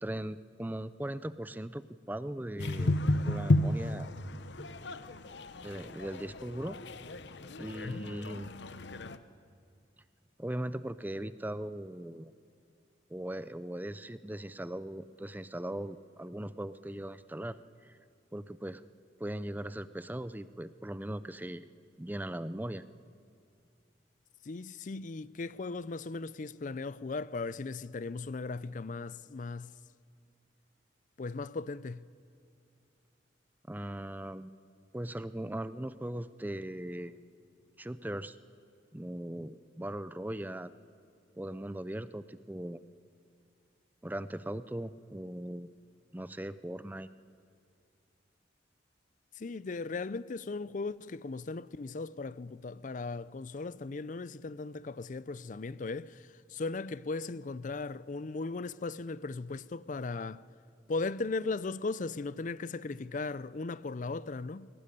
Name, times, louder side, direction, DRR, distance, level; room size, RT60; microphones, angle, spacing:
voice 1, 0.0-3.0 3.3-4.1 5.6-6.8 7.6-8.5 10.4-12.3 13.1-18.0 18.3-18.8 19.2-21.7 22.0-22.8 33.7-34.5 34.9-37.2 37.8-38.4 38.9-40.7 41.3-42.8 44.0-45.7 46.1-47.1, right 1 dB, 10° right, 0.5 m, -39 dB
sound 1, 2.6-9.2, left 2 dB, 70° left, 0.9 m, -33 dB
voice 2, 24.4-29.7 31.2-32.0 49.3-60.4 60.9-64.7, left 3 dB, 45° left, 0.5 m, -37 dB
21.5 x 18.5 x 9.8 m
head